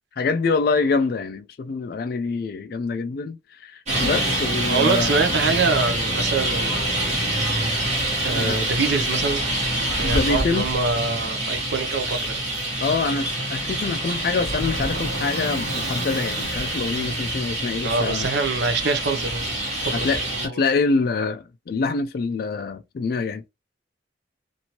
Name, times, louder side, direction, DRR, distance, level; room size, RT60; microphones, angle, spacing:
voice 1, 0.2-5.1 8.3-8.6 10.0-10.7 12.8-18.3 19.9-23.5, left 4 dB, 50° left, 0.3 m, -25 dB
Traffic noise roadway noise, 3.9-20.5, right 1 dB, 40° right, 1.1 m, -26 dB
voice 2, 4.7-6.7 8.2-9.4 9.7-12.4 17.8-19.5 19.9-20.6, right 4 dB, 65° right, 0.5 m, -25 dB
2.9 x 2.5 x 2.9 m
head